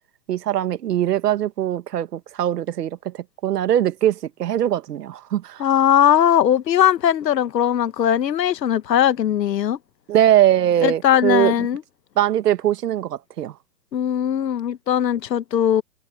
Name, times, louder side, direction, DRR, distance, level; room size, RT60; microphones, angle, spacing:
voice 1, 0.3-5.7 10.1-11.7 12.2-13.6, right 11 dB, 70° right, 1.7 m, -21 dB
voice 2, 5.6-9.8 10.8-11.8 13.9-15.8, left 10 dB, 80° left, 1.5 m, -19 dB
hypercardioid pair, 140°, 49 cm